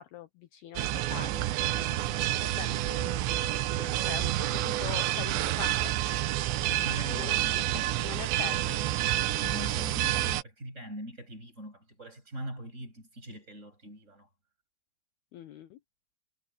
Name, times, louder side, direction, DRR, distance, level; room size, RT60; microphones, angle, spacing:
voice 1, 0.0-5.9 7.1-7.4 8.0-9.3 9.6-9.7 15.3-15.8, left 12 dB, 75° left, 2.6 m, -44 dB
sound 1, 0.8-10.4, right 14 dB, 75° right, 3.1 m, -29 dB
voice 2, 6.6-8.0 9.4-14.3, right 1 dB, 15° right, 7.1 m, -42 dB
omnidirectional pair, 5.3 m